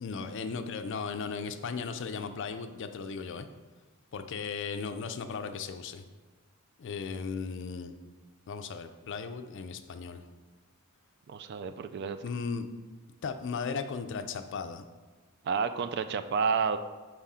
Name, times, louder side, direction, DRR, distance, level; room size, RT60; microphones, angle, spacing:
voice 1, 0.0-3.5 4.1-6.0 6.8-7.9 8.5-10.2 12.2-12.7 13.2-14.8, left 5 dB, 55° left, 9 dB, 0.4 m, -36 dB
voice 2, 11.3-12.2 15.4-16.8, right 5 dB, 50° right, 10 dB, 0.3 m, -30 dB
4.8 x 3.6 x 5.5 m, 1.3 s
head